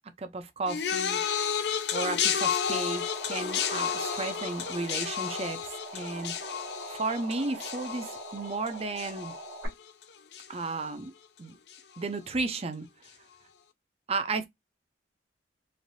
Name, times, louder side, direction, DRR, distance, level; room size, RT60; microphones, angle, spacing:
voice 1, 0.2-1.2 1.9-6.3 6.9-9.3 10.5-11.1 11.4-11.6 12.0-12.9 14.1-14.5, right 3 dB, 35° right, 0.5 m, -33 dB
sound 1, 0.7-10.0 10.3-10.9 11.7-11.8, left 8 dB, 65° left, 0.5 m, -32 dB
sound 2, 2.7-9.7, right 2 dB, 80° right, 1.3 m, -42 dB
3.3 x 2.6 x 2.6 m
head